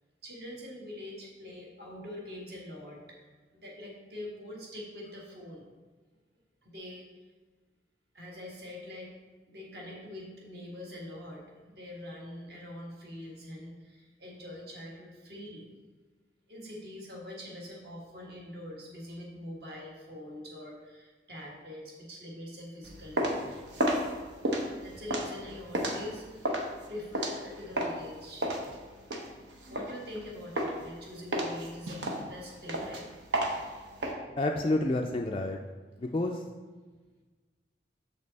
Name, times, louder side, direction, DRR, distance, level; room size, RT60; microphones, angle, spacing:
voice 1, 0.2-3.2 3.5-5.7 6.6-7.1 8.1-9.1 9.5-15.7 16.5-23.7 24.8-26.6 26.9-28.6 29.6-32.0 32.3-33.1, left 1 dB, 55° right, -2 dB, 1.5 m, -44 dB
sound 1, 22.8-28.0 28.4-30.2 30.6-30.9 31.3-34.1, right 1 dB, 80° right, 0.9 m, -32 dB
voice 2, 34.4-35.6 36.0-36.4, left 2 dB, 30° left, 2 dB, 0.3 m, -29 dB
6.6 x 5.3 x 4.0 m, 1.3 s
head